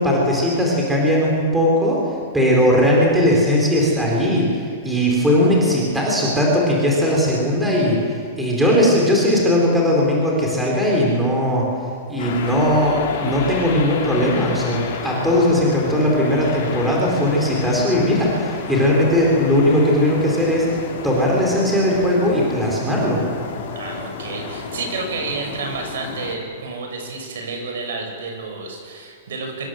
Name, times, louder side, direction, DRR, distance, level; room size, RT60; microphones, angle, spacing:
voice 1, 0.0-2.0 2.3-8.0 8.4-11.6 12.1-20.7 21.0-23.2, equal, 5° right, -3 dB, 4.3 m, -18 dB
sound 1, 12.2-26.4, left 6 dB, 50° left, 4.8 m, -30 dB
voice 2, 23.7-29.7, right 4 dB, 65° right, 3 dB, 7.7 m, -30 dB
26.0 x 23.5 x 7.9 m, 2.1 s
supercardioid pair, 180°, 0 cm